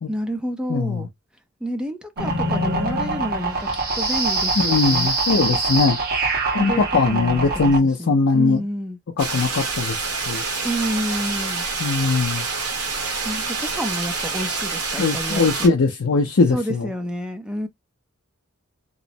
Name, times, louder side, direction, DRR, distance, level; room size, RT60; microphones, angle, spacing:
voice 1, 0.1-1.1 1.6-5.1 6.6-7.7 8.0-9.0 10.6-11.7 13.2-15.7 16.5-17.7, equal, 5° right, 0.5 m, -29 dB
voice 2, 0.7-1.1 4.6-6.0 6.5-8.6 9.2-10.0 10.3-10.4 11.8-12.5 15.0-16.9, left 4 dB, 60° left, 0.5 m, -20 dB
sound 1, 2.2-7.8, right 2 dB, 45° right, 1.2 m, -23 dB
sound 2, 9.2-15.7, right 4 dB, 70° right, 1.1 m, -27 dB
3.0 x 2.0 x 2.7 m
head